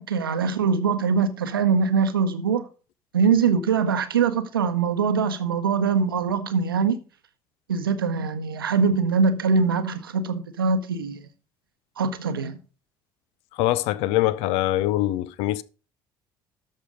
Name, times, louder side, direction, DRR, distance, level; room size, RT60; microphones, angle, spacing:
voice 1, 0.0-2.7 3.1-7.0 7.7-11.2 12.0-12.6, right 5 dB, 80° right, 0.8 m, -23 dB
voice 2, 13.6-15.6, left 15 dB, 60° left, 0.5 m, -23 dB
13.0 x 5.4 x 5.0 m
figure-of-eight pair, 50°, 12 cm